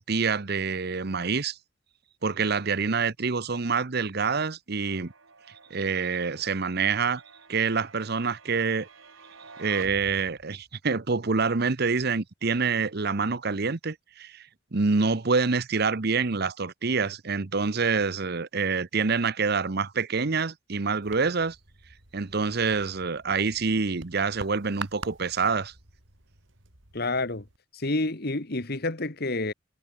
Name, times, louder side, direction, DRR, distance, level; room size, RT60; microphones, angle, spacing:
voice 1, 0.0-1.6 2.2-5.1 5.7-7.2 7.5-8.9 9.6-21.6 22.1-25.7, right 4 dB, 55° right, 0.9 m, -26 dB
sound 1, 4.8-10.7, right 3 dB, 90° right, 5.1 m, -49 dB
sound 2, 21.0-27.6, right 4 dB, 75° right, 4.4 m, -46 dB
voice 2, 26.9-27.5 27.7-29.5, left 2 dB, 50° left, 1.8 m, -29 dB
head